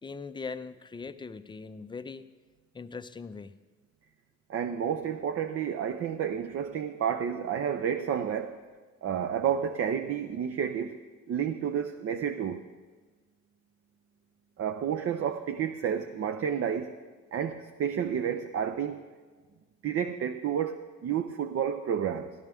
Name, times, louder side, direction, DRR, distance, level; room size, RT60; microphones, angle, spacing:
voice 1, 0.0-2.2 2.7-3.5, left 4 dB, 15° left, 0.4 m, -40 dB
voice 2, 4.5-8.6 9.0-11.0 11.3-12.6 14.6-16.9 17.3-19.1 19.8-22.3, right 8 dB, 50° right, 0.5 m, -30 dB
13.0 x 12.0 x 3.4 m
cardioid pair, 90°, 30 cm